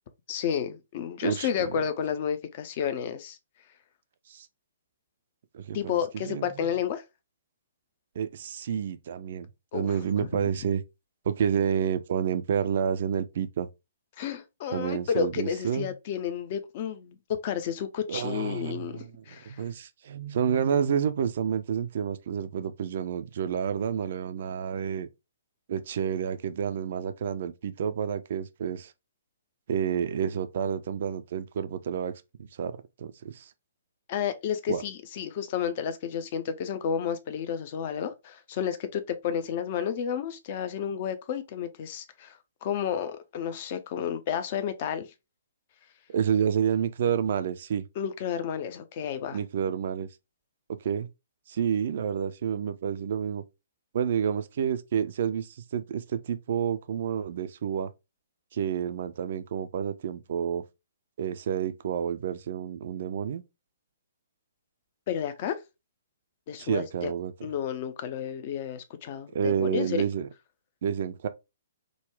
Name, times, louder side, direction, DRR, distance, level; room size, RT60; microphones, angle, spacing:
voice 1, 0.3-3.4 5.7-7.0 9.7-10.3 14.2-17.2 17.4-19.6 34.1-45.1 48.0-49.4 65.1-65.6 66.5-67.1 67.4-70.0, left 8 dB, 40° left, 0.5 m, -31 dB
voice 2, 1.2-1.8 4.3-4.5 5.5-6.7 8.2-9.5 9.7-10.8 11.3-13.7 14.7-15.9 18.1-19.1 19.5-25.1 25.7-28.9 29.7-32.1 32.6-33.5 34.7-34.8 46.1-47.8 49.3-50.1 50.8-51.1 51.5-53.4 53.9-57.9 58.5-60.6 61.2-63.4 66.6-67.3 69.3-70.3 70.8-71.3, right 8 dB, 45° right, 0.4 m, -29 dB
3.8 x 2.1 x 3.1 m
figure-of-eight pair, 125°, 0 cm